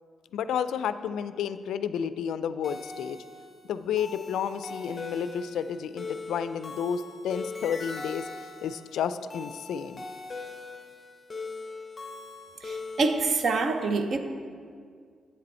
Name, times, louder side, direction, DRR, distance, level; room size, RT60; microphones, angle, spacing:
voice 1, 0.3-3.2 3.6-8.3 8.6-10.0, left 8 dB, 85° left, 12 dB, 0.3 m, -31 dB
sound 1, 2.6-13.3, left 3 dB, 25° left, 0.6 m, -41 dB
voice 2, 12.6-14.2, right 3 dB, 50° right, 7 dB, 0.6 m, -26 dB
8.0 x 6.8 x 4.2 m, 2.1 s
cardioid pair, 130°, 0 cm